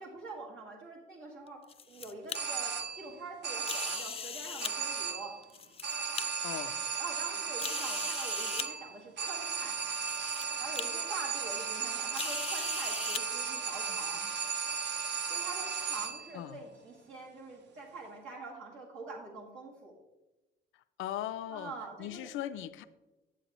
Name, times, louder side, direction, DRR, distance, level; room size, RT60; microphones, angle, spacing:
voice 1, 0.0-1.6 1.9-5.4 7.0-9.8 10.6-14.2 15.3-19.9 21.5-22.3, right 3 dB, 85° right, -3 dB, 1.8 m, -45 dB
sound 1, 1.5-2.4 3.6-4.7 5.4-6.2 6.9-7.0 7.6-8.7 9.6-9.7 10.1-10.4 10.8-10.9 12.1-13.2, left 7 dB, 30° left, 0.4 m, -39 dB
sound 2, 2.3-3.2 3.4-4.2 4.6-5.4 5.8-16.4, right 6 dB, 60° right, 0.8 m, -35 dB
voice 2, 6.4-6.8 16.3-16.6 21.0-21.7 22.0-22.9, left 12 dB, 85° left, 12 dB, 0.5 m, -38 dB
10.0 x 7.3 x 3.0 m, 1.1 s
cardioid pair, 90°, 20 cm